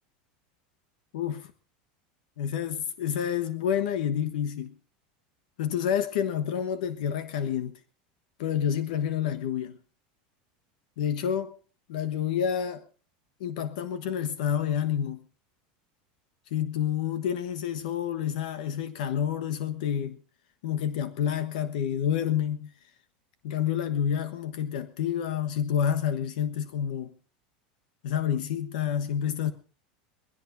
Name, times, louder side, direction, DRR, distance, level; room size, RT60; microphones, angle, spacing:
voice 1, 1.1-1.5 2.4-4.7 5.6-7.8 8.4-9.8 11.0-11.5 11.9-12.8 13.4-15.2 16.5-20.2 20.6-22.7 23.4-27.1 28.0-29.5, left 9 dB, 80° left, 1.2 m, -28 dB
23.0 x 16.5 x 2.7 m
supercardioid pair, 165°, 4 cm